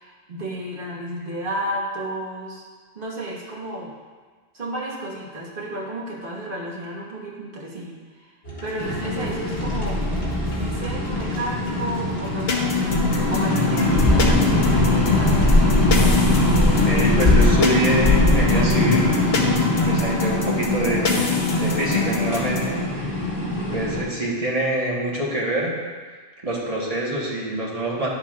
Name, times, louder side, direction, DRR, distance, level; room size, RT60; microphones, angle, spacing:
voice 1, 0.0-2.7 2.9-3.9 4.5-8.3 8.6-10.1 10.6-15.4, right 1 dB, 55° right, -4 dB, 1.5 m, -32 dB
sound 1, 8.4-18.1, right 1 dB, 90° left, 2.0 m, -31 dB
sound 2, 8.8-24.0, left 2 dB, 55° left, 2.1 m, -21 dB
sound 3, 12.5-22.8, left 4 dB, 70° left, 1.1 m, -25 dB
voice 2, 16.6-19.1 19.8-21.3 21.6-22.7 23.0-23.2 23.6-25.7 26.4-28.1, right 1 dB, 35° right, -4 dB, 1.4 m, -25 dB
10.5 x 7.2 x 2.4 m, 1.5 s
omnidirectional pair, 1.1 m